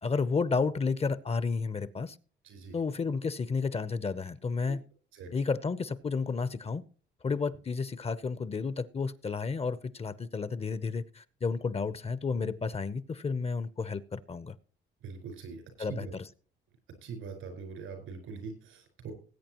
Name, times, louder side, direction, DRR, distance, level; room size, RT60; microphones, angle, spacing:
voice 1, 0.0-2.2 2.7-4.8 5.3-6.8 7.2-14.5 15.8-16.2, left 4 dB, 30° left, 0.8 m, -31 dB
voice 2, 2.4-2.8 4.7-4.8 5.1-5.3 15.0-15.6 15.9-16.1 17.0-19.1, right 5 dB, 90° right, 4.7 m, -42 dB
19.5 x 8.6 x 3.0 m
cardioid pair, 90°, 20 cm